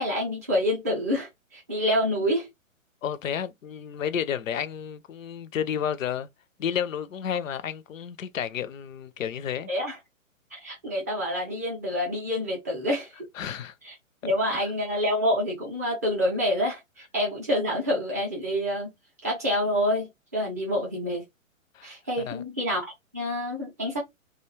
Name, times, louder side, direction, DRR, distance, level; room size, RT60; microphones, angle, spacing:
voice 1, 0.0-2.5 9.7-10.0 10.5-13.1 13.8-14.0 14.2-18.9 19.2-21.2 21.8-24.0, equal, 15° right, 0.4 m, -27 dB
voice 2, 3.0-6.3 6.6-9.7 13.4-13.7 14.4-14.6 21.7-21.9 22.3-22.4, left 8 dB, 70° left, 0.5 m, -31 dB
2.2 x 2.0 x 3.0 m
figure-of-eight pair, 125°, 41 cm